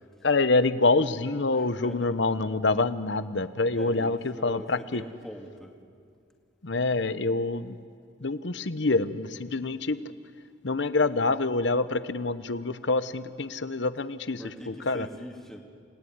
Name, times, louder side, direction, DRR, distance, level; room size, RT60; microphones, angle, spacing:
voice 1, 0.2-5.0 6.6-7.7 8.2-10.0 10.6-15.1, left 3 dB, 65° left, 13 dB, 0.9 m, -26 dB
voice 2, 1.5-2.1 3.7-5.8 14.4-15.6, equal, ahead, 2 dB, 2.2 m, -43 dB
28.5 x 19.0 x 9.6 m, 2.2 s
head